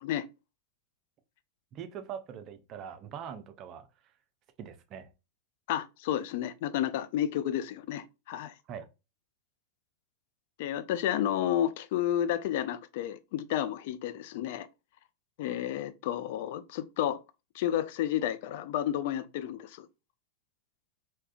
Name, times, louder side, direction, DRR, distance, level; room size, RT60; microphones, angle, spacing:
voice 1, 1.7-3.9 4.6-5.1 8.7-8.9, right 8 dB, 35° right, 0.5 m, -42 dB
voice 2, 5.7-8.5 10.6-14.7 15.4-17.2 17.5-19.9, left 11 dB, 50° left, 0.3 m, -31 dB
3.3 x 2.7 x 2.3 m
figure-of-eight pair, 90°, 0 cm